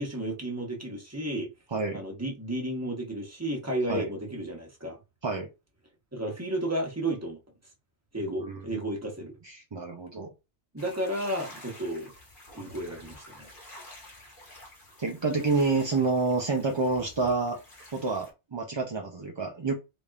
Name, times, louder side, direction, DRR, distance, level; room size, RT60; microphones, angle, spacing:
voice 1, 0.0-1.5 1.9-5.0 6.1-7.4 8.1-9.4 10.7-12.1 12.5-13.5, right 1 dB, 15° right, 1.1 m, -32 dB
voice 2, 8.2-8.8 9.4-10.3 15.0-17.6 17.9-19.7, right 3 dB, 35° right, 0.5 m, -28 dB
sound 1, 10.8-18.3, left 1 dB, 45° left, 1.5 m, -49 dB
4.0 x 3.4 x 2.4 m
omnidirectional pair, 1.2 m